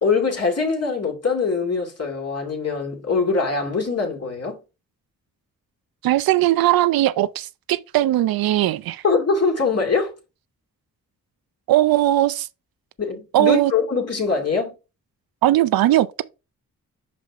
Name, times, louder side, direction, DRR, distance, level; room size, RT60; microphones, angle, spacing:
voice 1, 0.0-4.6 9.0-10.1 13.0-14.7, left 4 dB, 45° left, 2.5 m, -23 dB
voice 2, 6.0-9.0 11.7-12.5 13.3-13.7 15.4-16.2, right 14 dB, 90° right, 0.5 m, -19 dB
5.7 x 5.1 x 3.4 m
cardioid pair, 65°, 35 cm